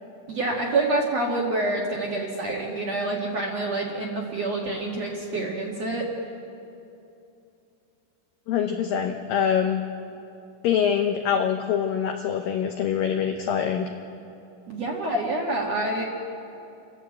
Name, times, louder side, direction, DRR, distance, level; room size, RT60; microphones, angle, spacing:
voice 1, 0.3-6.1 14.7-16.0, right 2 dB, 55° right, -2 dB, 2.0 m, -27 dB
voice 2, 8.5-9.8 10.6-13.9, left 8 dB, 85° left, 4 dB, 1.9 m, -24 dB
29.0 x 11.5 x 8.3 m, 2.8 s
omnidirectional pair, 5.2 m